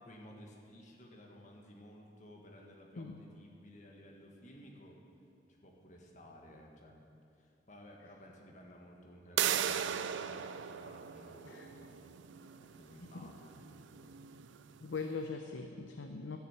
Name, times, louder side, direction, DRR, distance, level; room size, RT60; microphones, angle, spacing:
voice 1, 0.0-5.0 5.5-7.0 7.4-12.1 12.4-14.1, equal, 40° left, 0 dB, 1.5 m, -55 dB
sound 1, 9.4-15.0, right 9 dB, 70° right, 0.4 m, -38 dB
voice 2, 14.8-16.4, left 4 dB, 75° left, 4 dB, 0.6 m, -41 dB
11.5 x 7.3 x 8.0 m, 2.6 s
head